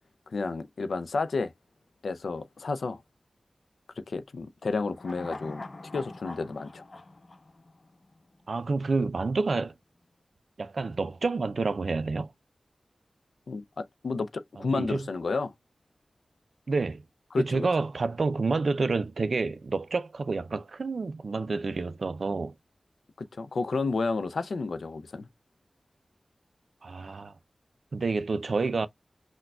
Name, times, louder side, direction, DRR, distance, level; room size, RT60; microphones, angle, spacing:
voice 1, 0.3-1.5 2.0-3.0 4.0-5.6 5.9-6.8 13.5-15.5 17.3-17.7 23.2-25.3, left 3 dB, 90° left, 0.4 m, -31 dB
sound 1, 4.9-8.3 8.6-8.7, left 2 dB, 50° left, 0.7 m, -43 dB
voice 2, 8.5-9.7 10.6-12.3 14.7-15.0 16.7-17.0 17.4-22.5 26.8-27.3 27.9-28.9, right 3 dB, 70° right, 0.3 m, -28 dB
5.8 x 2.2 x 2.3 m
wide cardioid pair, 70°, 0 cm